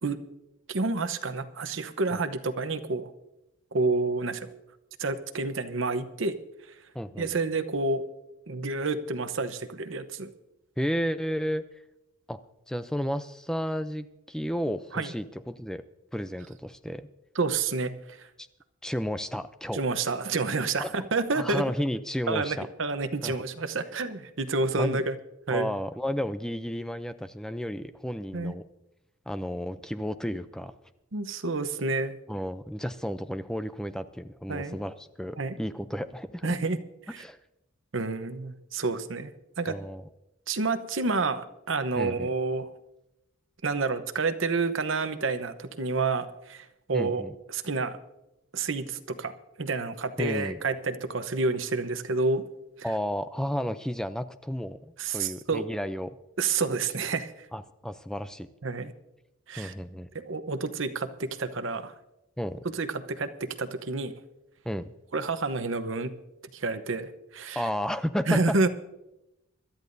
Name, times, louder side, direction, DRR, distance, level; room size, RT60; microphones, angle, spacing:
voice 1, 0.7-3.1 3.7-4.5 5.0-6.4 7.2-8.0 8.5-10.3 14.9-15.1 17.3-18.3 19.7-21.6 22.3-25.2 25.5-25.7 28.3-28.5 31.1-32.2 34.5-34.8 35.4-35.6 36.4-36.8 37.1-37.2 37.9-39.3 39.6-39.8 40.5-42.7 43.6-47.2 47.5-48.0 48.5-49.3 49.6-52.4 55.0-55.6 56.4-57.5 58.6-58.9 59.5-59.7 60.1-61.9 62.7-64.1 65.1-66.1 66.5-67.6 68.3-68.7, right 3 dB, 65° right, 9 dB, 0.9 m, -29 dB
voice 2, 6.9-7.3 10.8-11.6 12.3-12.4 12.7-15.8 16.1-17.1 18.4-18.5 18.8-19.8 20.8-20.9 21.3-22.7 23.2-23.4 24.8-25.0 25.5-28.6 29.3-30.7 32.3-36.6 37.2-37.4 39.7-40.0 42.0-42.3 46.9-47.4 50.2-50.6 52.8-54.8 55.1-56.1 57.5-58.5 59.6-60.1 62.4-62.6 64.7-64.9 67.6-68.6, equal, 5° left, 11 dB, 0.4 m, -32 dB
26.0 x 13.0 x 2.7 m, 0.91 s
head